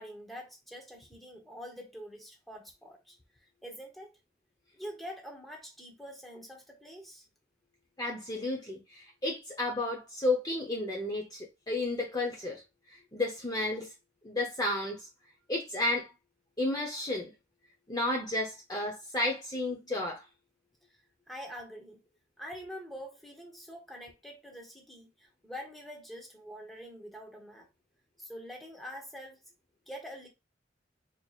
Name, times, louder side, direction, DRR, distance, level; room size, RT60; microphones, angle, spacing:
voice 1, 0.0-3.2 3.6-4.1 4.7-7.2 21.3-22.0 22.4-27.7 28.2-29.4 29.9-30.3, equal, ahead, 0.9 m, -45 dB
voice 2, 8.0-12.6 13.1-13.9 14.2-15.1 15.5-16.1 16.6-17.3 17.9-20.2, left 2 dB, 20° left, 0.7 m, -32 dB
4.4 x 2.9 x 2.4 m
head